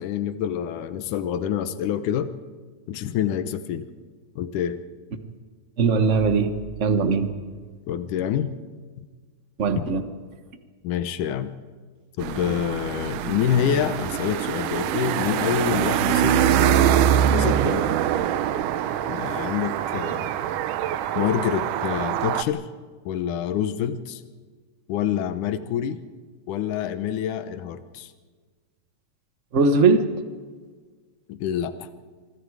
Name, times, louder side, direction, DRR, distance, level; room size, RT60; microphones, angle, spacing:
voice 1, 0.0-2.3 2.9-3.9 4.4-4.8 7.9-8.6 9.8-9.9 10.8-11.6 12.2-16.6 17.3-18.0 19.1-20.3 21.1-22.7 23.1-24.2 24.9-26.0 26.5-28.1 31.3-31.9, left 9 dB, 85° left, 11 dB, 2.5 m, -27 dB
voice 2, 5.8-7.3 9.6-10.0 29.5-30.1, right 4 dB, 65° right, 8 dB, 0.7 m, -20 dB
sound 1, 12.2-22.4, right 10 dB, 90° right, 2.4 m, -24 dB
26.5 x 25.0 x 4.8 m, 1.5 s
omnidirectional pair, 3.5 m